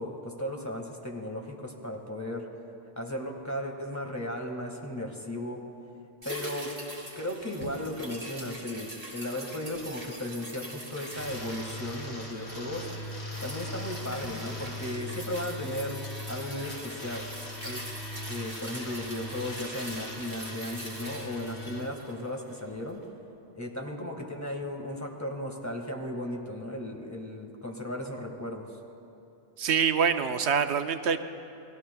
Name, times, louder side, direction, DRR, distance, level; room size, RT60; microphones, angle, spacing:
voice 1, 0.0-2.5 2.9-5.7 6.2-6.7 7.1-12.9 13.4-17.2 17.6-18.0 18.3-23.1 23.5-28.7, left 1 dB, 15° left, 1 dB, 1.8 m, -36 dB
sound 1, 6.2-22.7 23.0-23.1, right 1 dB, 35° right, 3.2 m, -43 dB
sound 2, 11.1-21.8, left 1 dB, 70° left, 3.0 m, -40 dB
voice 2, 29.6-31.2, right 6 dB, 85° right, 8 dB, 1.0 m, -25 dB
29.5 x 20.5 x 2.3 m, 2.9 s
omnidirectional pair, 1.1 m